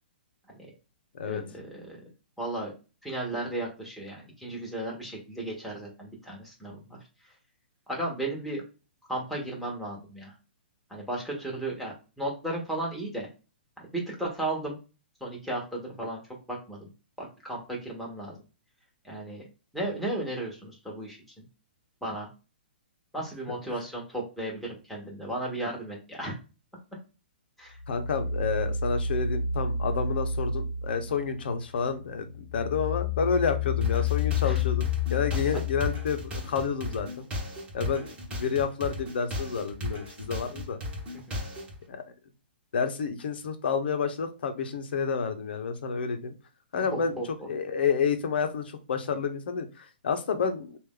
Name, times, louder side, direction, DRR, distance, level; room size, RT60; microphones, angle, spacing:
voice 1, 1.3-2.0 2.4-2.7 3.0-7.0 7.9-8.6 9.1-10.3 10.9-13.3 13.8-14.8 15.2-16.2 16.5-16.9 17.2-18.4 19.0-19.4 19.7-21.4 22.0-22.3 23.1-26.4 27.6-27.8 34.4-34.6 41.3-41.4 46.9-47.3, right 1 dB, ahead, -3 dB, 1.2 m, -35 dB
sound 1, 27.8-31.7 32.1-36.6, left 6 dB, 90° left, 0.4 m, -30 dB
voice 2, 27.9-37.3 37.7-40.8 41.9-42.0 42.7-46.3 46.7-47.2 47.5-50.8, left 5 dB, 70° left, 7 dB, 0.8 m, -29 dB
sound 2, 33.8-41.8, left 1 dB, 20° right, 1.2 m, -36 dB
3.3 x 2.5 x 3.6 m, 0.32 s
hypercardioid pair, 140°, 6 cm